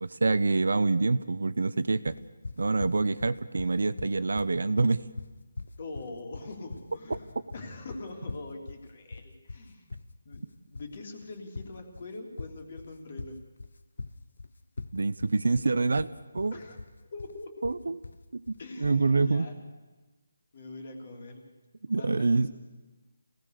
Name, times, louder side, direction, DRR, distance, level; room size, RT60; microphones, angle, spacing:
voice 1, 0.0-2.2 2.6-5.0 7.1-7.2 14.9-16.1 16.3-16.5 17.6-18.0 18.3-19.5 21.9-22.5, right 3 dB, 75° right, 14 dB, 1.0 m, -26 dB
sound 1, 2.1-19.0, left 3 dB, 70° left, 1.0 m, -43 dB
voice 2, 5.8-9.9 10.2-13.4 16.5-17.7 18.6-19.6 20.5-21.4 21.9-22.5, left 2 dB, 35° left, 3 dB, 3.3 m, -43 dB
27.0 x 18.0 x 6.7 m, 1.2 s
hypercardioid pair, 175°, 0 cm